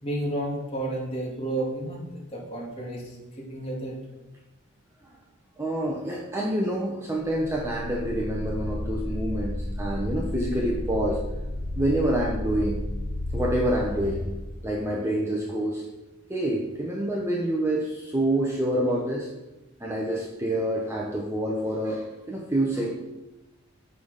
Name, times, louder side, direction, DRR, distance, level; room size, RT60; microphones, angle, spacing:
voice 1, 0.0-3.0 3.4-4.0, right 1 dB, 25° left, -4 dB, 2.4 m, -31 dB
voice 2, 5.6-11.2 11.8-12.8 13.3-14.3 14.6-15.8 16.3-19.3 19.8-22.9, right 1 dB, 10° right, -2 dB, 0.8 m, -27 dB
sound 1, 7.4-14.9, left 1 dB, 75° left, 1.8 m, -32 dB
8.5 x 5.6 x 5.0 m, 1.0 s
head